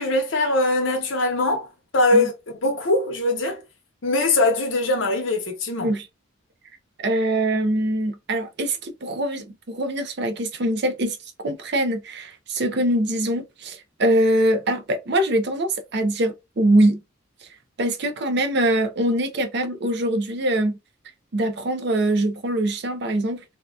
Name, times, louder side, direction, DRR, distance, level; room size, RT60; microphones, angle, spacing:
voice 1, 0.0-1.7 1.9-2.3 2.6-3.6 4.0-5.9, left 2 dB, 75° left, 0.9 m, -21 dB
voice 2, 7.0-11.2 11.4-17.0 17.8-20.8 21.3-23.4, right 1 dB, 55° right, 0.6 m, -23 dB
2.7 x 2.3 x 2.3 m
head